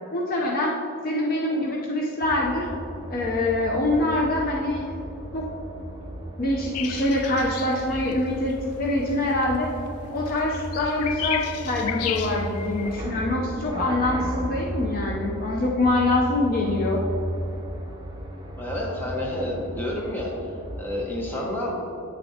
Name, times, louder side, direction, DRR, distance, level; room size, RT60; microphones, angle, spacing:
voice 1, 0.1-0.7 1.0-2.7 3.1-4.8 5.3-5.5 6.4-9.7 10.1-17.0, left 2 dB, 40° left, -2 dB, 0.6 m, -24 dB
sound 1, 2.2-21.1, equal, 20° right, 0.6 m, -35 dB
sound 2, 6.7-13.0, left 9 dB, 80° left, 0.4 m, -34 dB
voice 2, 18.6-20.3 20.8-21.7, left 1 dB, 10° left, -3 dB, 1.1 m, -29 dB
8.9 x 6.5 x 2.8 m, 2.8 s
head